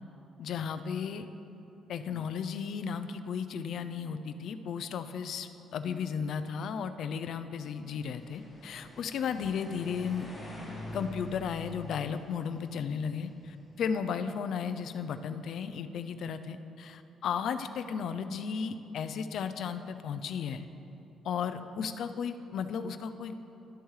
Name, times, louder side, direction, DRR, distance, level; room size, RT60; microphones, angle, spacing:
voice 1, 0.4-1.3 1.9-10.3 10.9-20.7 21.2-23.4, left 6 dB, 55° left, 9 dB, 0.3 m, -34 dB
sound 1, 7.8-13.9, left 1 dB, 15° left, 2.0 m, -46 dB
12.0 x 8.0 x 3.2 m, 2.9 s
cardioid pair, 165°, 0 cm